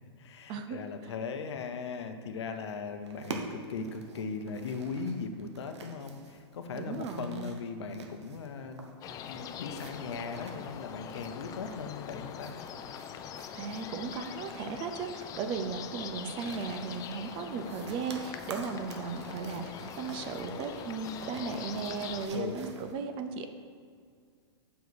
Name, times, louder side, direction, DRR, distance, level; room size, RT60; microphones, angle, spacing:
voice 1, 0.2-8.9 9.3-12.6 22.3-22.6, left 5 dB, 75° left, 7 dB, 0.7 m, -38 dB
sound 1, 3.1-22.9, right 4 dB, 80° right, 1.0 m, -47 dB
voice 2, 6.7-7.5 13.5-19.6 20.0-23.5, right 5 dB, 35° right, 7 dB, 0.6 m, -36 dB
sound 2, 9.0-22.3, left 8 dB, 25° left, 0.4 m, -43 dB
5.6 x 4.6 x 6.3 m, 2.1 s
hypercardioid pair, 120°, 14 cm